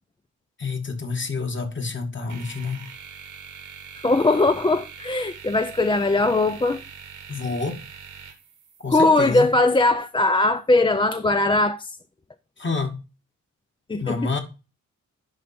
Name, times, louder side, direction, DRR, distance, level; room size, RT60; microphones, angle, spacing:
voice 1, 0.6-2.9 7.3-7.8 8.8-9.5 12.6-13.0 14.0-14.4, left 4 dB, 40° left, 1.6 m, -28 dB
sound 1, 2.3-9.1, right 7 dB, 75° right, 1.6 m, -43 dB
voice 2, 4.0-6.8 8.9-12.0 13.9-14.4, left 2 dB, 15° left, 0.4 m, -20 dB
10.5 x 3.5 x 4.2 m
cardioid pair, 85°, 31 cm